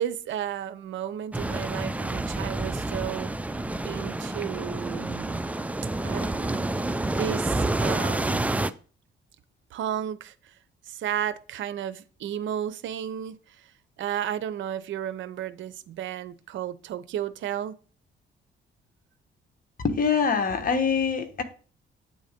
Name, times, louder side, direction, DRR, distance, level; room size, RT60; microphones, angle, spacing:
voice 1, 0.0-3.3 3.8-5.4 6.0-8.4 9.7-10.5 10.9-13.7 14.0-17.7, right 10 dB, 75° right, 0.6 m, -33 dB
sound 1, 1.3-8.7, right 2 dB, 5° right, 0.4 m, -29 dB
voice 2, 19.8-21.4, left 6 dB, 45° left, 1.2 m, -24 dB
8.7 x 4.0 x 5.1 m
cardioid pair, 90°, 20 cm